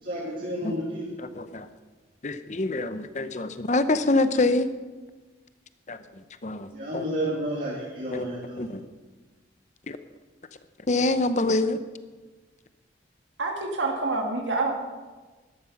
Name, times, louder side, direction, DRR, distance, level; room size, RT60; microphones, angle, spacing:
voice 1, 0.0-1.1 6.7-8.7, right 1 dB, 45° right, -5 dB, 2.6 m, -31 dB
voice 2, 1.2-1.7 2.2-4.7 5.9-6.0 6.4-7.0 8.1-8.3 8.6-8.8 9.9-10.0 10.9-11.8, left 2 dB, 40° left, 11 dB, 0.7 m, -25 dB
voice 3, 13.4-14.7, right 3 dB, 85° right, 2 dB, 1.9 m, -27 dB
13.0 x 12.0 x 5.8 m, 1.3 s
head